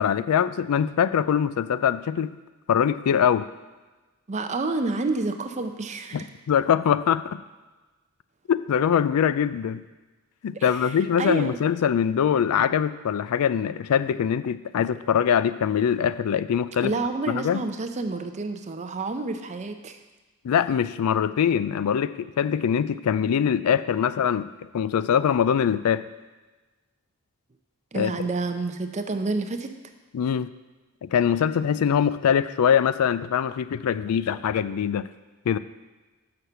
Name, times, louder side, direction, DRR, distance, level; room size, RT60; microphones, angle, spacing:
voice 1, 0.0-2.3 2.7-3.5 6.1-7.4 8.5-9.8 10.4-16.9 17.3-17.6 20.4-24.5 24.7-26.0 27.9-28.1 30.1-30.5 31.0-35.1 35.5-35.6, left 8 dB, 80° left, 14 dB, 0.3 m, -23 dB
voice 2, 4.3-6.3 10.5-11.5 16.8-20.0 27.9-29.7, right 3 dB, 30° right, 7 dB, 0.5 m, -29 dB
6.4 x 5.8 x 6.8 m, 1.2 s
head